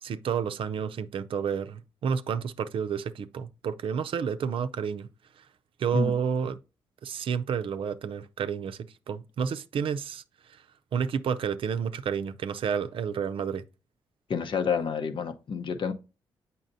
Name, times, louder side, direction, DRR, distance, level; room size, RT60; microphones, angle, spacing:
voice 1, 0.0-5.1 5.4-5.5 5.8-6.6 7.0-10.2 10.5-10.6 10.9-13.6, right 7 dB, 65° right, 0.5 m, -30 dB
voice 2, 14.3-15.9, left 5 dB, 60° left, 0.9 m, -29 dB
7.6 x 5.6 x 2.7 m
supercardioid pair, 60°, 10 cm